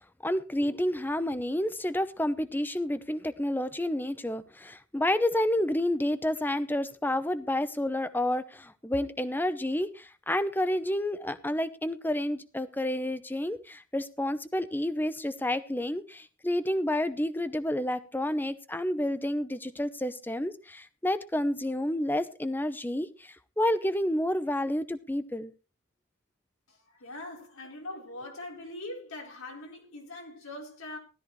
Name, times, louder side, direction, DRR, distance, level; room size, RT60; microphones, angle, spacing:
voice 1, 0.2-25.5, left 1 dB, 10° left, 0.7 m, -30 dB
voice 2, 26.7-31.0, left 2 dB, 85° left, 4.1 m, -42 dB
16.0 x 13.0 x 3.2 m
head